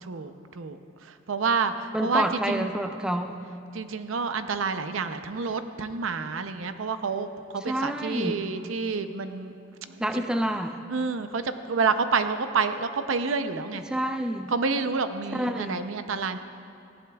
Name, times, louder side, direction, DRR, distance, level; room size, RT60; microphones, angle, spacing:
voice 1, 0.0-2.7 3.7-7.3 7.5-9.5 9.9-10.0 10.9-13.8 14.5-16.4, right 4 dB, 85° right, 10 dB, 0.6 m, -28 dB
voice 2, 1.9-3.4 7.6-8.4 10.0-10.7 13.9-14.5 15.3-15.9, right 1 dB, 5° right, 5 dB, 0.4 m, -28 dB
19.0 x 15.0 x 2.3 m, 2.6 s
head